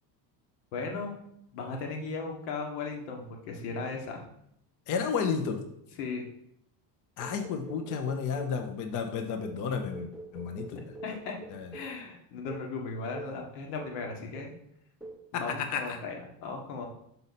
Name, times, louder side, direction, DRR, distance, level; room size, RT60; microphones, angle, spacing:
voice 1, 0.7-1.1 1.5-4.2 6.0-6.2 10.7-11.4 11.7-14.5 15.3-16.9, left 4 dB, 75° left, 2 dB, 1.7 m, -37 dB
voice 2, 4.9-5.6 7.2-10.8 11.5-11.7 15.3-16.0, left 6 dB, 40° left, 5 dB, 0.8 m, -32 dB
sound 1, 7.2-8.6 9.2-12.0 12.5-12.7 13.1-13.4 13.8-14.1 14.4-14.7 15.0-15.3, right 2 dB, ahead, 0.4 m, -45 dB
5.8 x 5.3 x 4.1 m, 0.74 s
cardioid pair, 140°, 47 cm